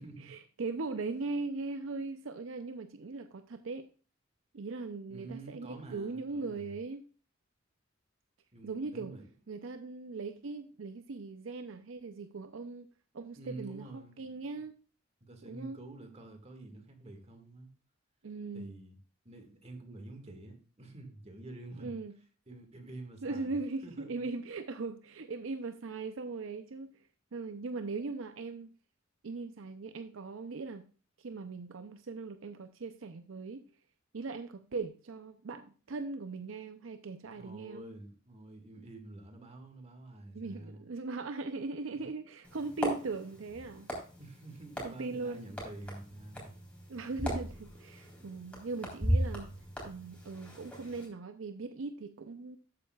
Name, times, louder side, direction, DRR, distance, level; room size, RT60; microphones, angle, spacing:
voice 1, 0.0-3.9 4.5-7.0 8.6-9.1 9.5-12.9 13.1-14.7 15.4-15.8 18.2-18.7 21.8-22.1 23.2-28.7 29.2-30.8 31.2-33.6 34.1-37.8 40.3-43.9 44.8-45.5 46.9-49.5 49.8-52.6, right 3 dB, 75° right, 0.6 m, -39 dB
voice 2, 5.1-6.8 8.5-9.2 13.3-14.4 15.2-17.7 18.5-19.0 19.3-22.0 22.5-23.6 23.8-24.2 37.3-40.9 41.9-42.1 44.2-46.6, right 2 dB, 35° right, 1.9 m, -48 dB
sound 1, 42.4-51.0, equal, 5° left, 3.8 m, -38 dB
13.0 x 8.7 x 2.4 m
head